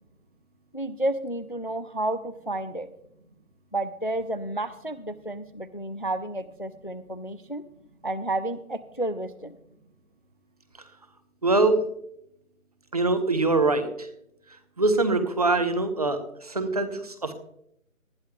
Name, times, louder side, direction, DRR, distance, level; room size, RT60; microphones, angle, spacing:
voice 1, 0.7-2.9 3.7-7.6 8.0-9.6, right 1 dB, 40° left, 15 dB, 0.4 m, -31 dB
voice 2, 11.4-11.8 12.9-14.1 14.8-17.3, right 3 dB, 25° right, 9 dB, 0.9 m, -23 dB
19.5 x 12.0 x 2.3 m, 0.73 s
figure-of-eight pair, 165°, 43 cm